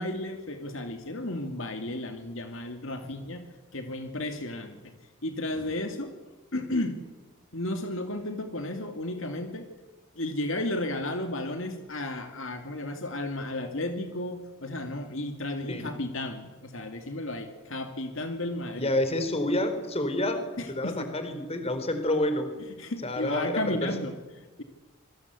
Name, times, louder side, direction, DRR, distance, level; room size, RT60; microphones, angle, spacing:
voice 1, 0.0-3.4 3.7-4.9 5.2-6.1 6.5-7.0 7.5-9.7 10.2-18.9 20.6-21.1 22.8-24.6, left 1 dB, 65° left, 5 dB, 2.4 m, -33 dB
voice 2, 18.7-20.4 20.7-22.5 23.0-23.9, left 1 dB, 30° left, 8 dB, 4.3 m, -28 dB
27.5 x 23.5 x 8.3 m, 1.2 s
head